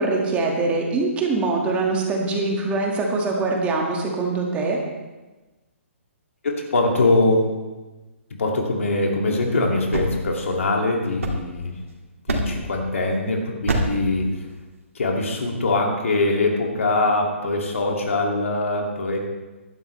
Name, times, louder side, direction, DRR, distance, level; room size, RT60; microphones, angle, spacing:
voice 1, 0.0-4.8, right 3 dB, 20° right, 0 dB, 2.0 m, -23 dB
voice 2, 6.4-7.5 8.4-11.7 12.3-14.4 14.9-19.2, left 2 dB, 75° left, 0 dB, 2.5 m, -22 dB
sound 1, 9.9-11.9 12.3-12.8 13.7-14.1, right 2 dB, 80° right, 2.3 m, -27 dB
16.0 x 11.5 x 3.3 m, 1.2 s
hypercardioid pair, 135°, 7 cm